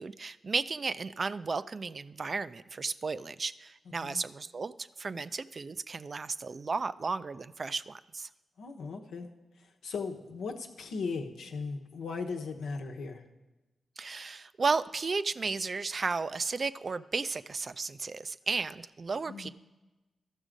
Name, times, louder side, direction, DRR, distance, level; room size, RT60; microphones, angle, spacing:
voice 1, 0.0-8.3 14.0-19.5, right 4 dB, 50° right, 14 dB, 0.4 m, -34 dB
voice 2, 8.6-9.3 9.8-13.2 19.3-19.5, left 4 dB, 80° left, 2 dB, 1.0 m, -37 dB
13.0 x 6.2 x 5.1 m, 1.1 s
supercardioid pair, 40°, 0 cm